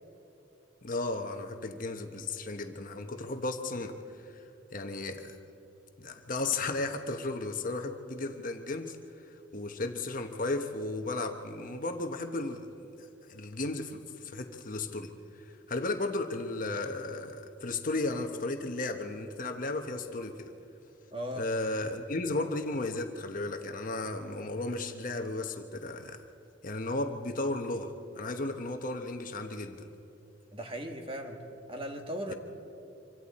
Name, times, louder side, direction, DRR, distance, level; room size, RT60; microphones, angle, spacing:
voice 1, 0.8-4.4 4.7-5.4 6.0-12.9 13.3-20.5 21.4-26.2 26.6-29.9 32.3-32.4, left 2 dB, 45° left, 6 dB, 1.1 m, -35 dB
voice 2, 21.1-21.5 30.5-31.4 31.7-32.3, equal, 30° right, 4 dB, 1.7 m, -37 dB
26.0 x 25.0 x 4.2 m, 2.8 s
head